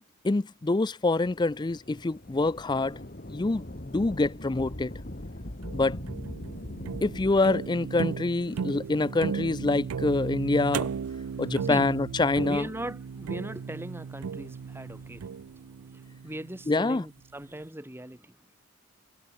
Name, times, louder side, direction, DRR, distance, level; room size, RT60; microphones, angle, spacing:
voice 1, 0.2-3.0 3.3-4.9 5.7-6.0 7.0-10.9 11.4-12.7 16.7-17.0, left 3 dB, 20° left, 0.4 m, -26 dB
Thunder / Rain, 1.1-10.1 10.8-10.9 11.8-13.1 14.6-15.4, left 1 dB, 40° left, 2.0 m, -43 dB
sound 1, 5.6-16.8, right 6 dB, 80° right, 0.4 m, -36 dB
voice 2, 11.3-11.9 12.4-18.4, right 1 dB, 10° right, 1.5 m, -40 dB
head